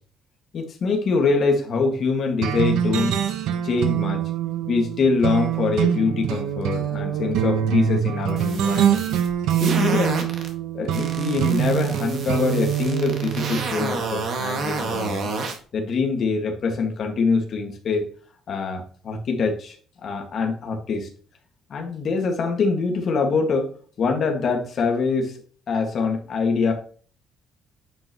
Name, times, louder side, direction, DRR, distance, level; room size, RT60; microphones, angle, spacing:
voice 1, 0.5-3.2 3.6-4.2 4.7-9.1 9.6-10.3 10.7-15.3 15.7-18.0 18.5-19.8 20.0-21.1 21.7-23.7 24.0-25.4 25.7-26.7, left 4 dB, 35° left, 2 dB, 1.9 m, -24 dB
sound 1, 2.4-13.7, right 10 dB, 75° right, 1.1 m, -24 dB
sound 2, 8.3-10.5 10.9-15.6, right 4 dB, 45° right, 1.8 m, -30 dB
9.8 x 5.8 x 3.0 m, 0.43 s
cardioid pair, 180°, 0 cm